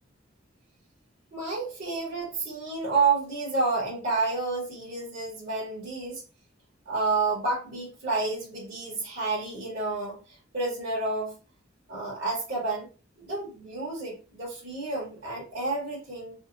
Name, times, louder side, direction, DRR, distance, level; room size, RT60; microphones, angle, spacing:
voice 1, 1.3-6.2 6.8-10.2 10.5-11.3 11.9-12.9 13.2-16.3, right 3 dB, 45° right, -8 dB, 1.1 m, -30 dB
2.7 x 2.3 x 2.5 m, 0.33 s
head